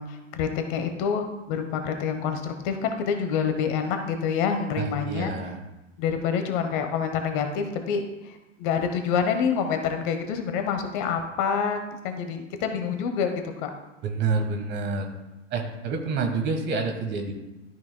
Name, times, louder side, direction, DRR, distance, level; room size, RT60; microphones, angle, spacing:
voice 1, 0.0-5.3 6.0-13.7, left 6 dB, 40° left, 6 dB, 1.0 m, -27 dB
voice 2, 4.8-5.6 14.0-15.1 15.5-17.3, right 4 dB, 25° right, 5 dB, 1.3 m, -28 dB
13.0 x 5.9 x 2.2 m, 0.98 s
figure-of-eight pair, 105°, 39 cm